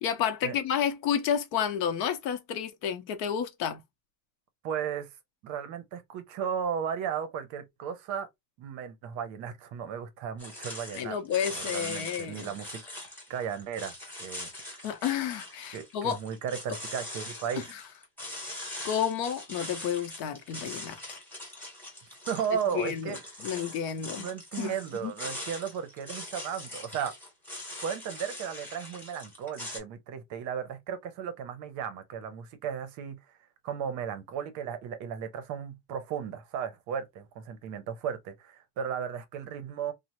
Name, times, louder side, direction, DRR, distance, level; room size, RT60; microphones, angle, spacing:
voice 1, 0.0-3.8 10.9-12.5 14.8-16.2 17.6-17.8 18.4-21.2 22.7-23.2 23.4-24.3 24.6-24.7 25.0-25.1, left 8 dB, 65° left, 0.8 m, -31 dB
voice 2, 4.6-5.1 5.4-8.3 8.6-11.2 11.5-12.8 13.3-14.9 15.7-17.7 22.3-23.2 24.2-27.1 27.8-33.4 33.6-39.9, right 7 dB, 40° right, 0.6 m, -35 dB
sound 1, 10.4-29.8, left 1 dB, 5° left, 0.8 m, -42 dB
3.1 x 2.1 x 2.9 m
cardioid pair, 165°, 47 cm